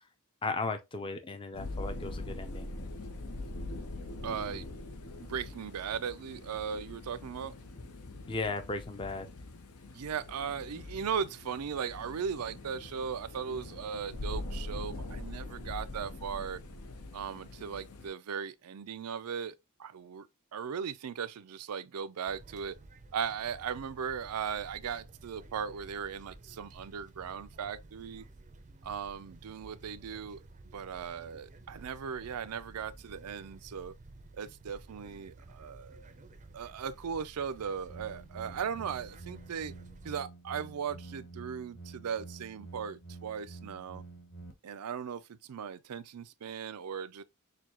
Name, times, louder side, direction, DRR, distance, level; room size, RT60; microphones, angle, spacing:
voice 1, 0.4-2.7 8.3-9.3, left 3 dB, 25° left, 0.4 m, -36 dB
sound 1, 1.5-18.1, left 2 dB, 85° left, 0.8 m, -43 dB
voice 2, 4.2-4.6 5.2-7.5 9.9-16.6 17.1-22.8 23.1-28.3 28.8-30.4 30.7-33.9 34.3-36.2 36.5-39.7 40.0-44.0 44.6-47.2, right 7 dB, 90° right, 0.5 m, -38 dB
sound 2, 22.3-40.1, right 2 dB, 35° right, 0.5 m, -53 dB
sound 3, 37.9-44.5, right 3 dB, 40° left, 1.2 m, -48 dB
6.6 x 2.2 x 2.9 m
head